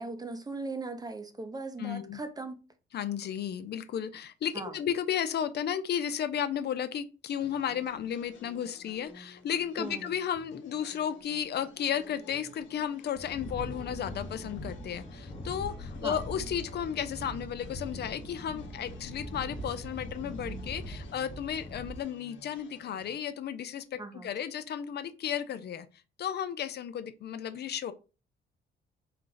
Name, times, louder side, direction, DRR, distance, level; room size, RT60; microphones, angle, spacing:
voice 1, 0.0-2.6 4.5-4.7 9.8-10.0 16.0-16.2 24.0-24.3, right 3 dB, 20° right, 0.6 m, -38 dB
voice 2, 1.8-2.2 2.9-25.9 26.2-27.9, left 9 dB, 55° left, 0.5 m, -34 dB
sound 1, 7.4-23.2, left 4 dB, 70° left, 1.1 m, -54 dB
sound 2, 13.1-22.0, equal, 25° left, 0.9 m, -41 dB
4.4 x 2.4 x 3.9 m
cardioid pair, 90°, 20 cm